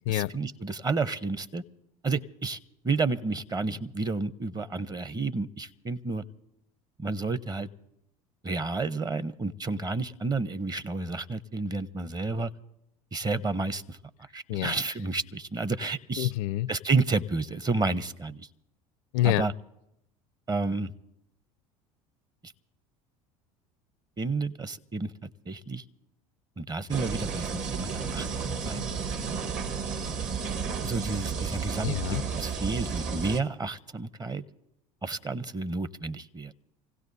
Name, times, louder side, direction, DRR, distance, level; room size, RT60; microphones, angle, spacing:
voice 1, 0.1-1.6 2.0-2.6 2.8-6.2 7.0-7.7 8.4-12.5 13.1-14.0 14.3-16.3 16.7-18.5 19.2-19.5 20.5-20.9 22.4-22.5 24.2-25.8 26.6-28.8 30.8-31.9 32.3-34.4 35.0-36.5, right 3 dB, 20° right, 15 dB, 0.8 m, -31 dB
voice 2, 16.2-16.7 19.1-19.5 31.8-32.2, left 15 dB, 65° left, 21 dB, 0.4 m, -27 dB
sound 1, 26.9-33.4, right 5 dB, 45° right, 1.4 m, -32 dB
27.0 x 16.5 x 2.7 m, 0.83 s
hypercardioid pair, 70°, 18 cm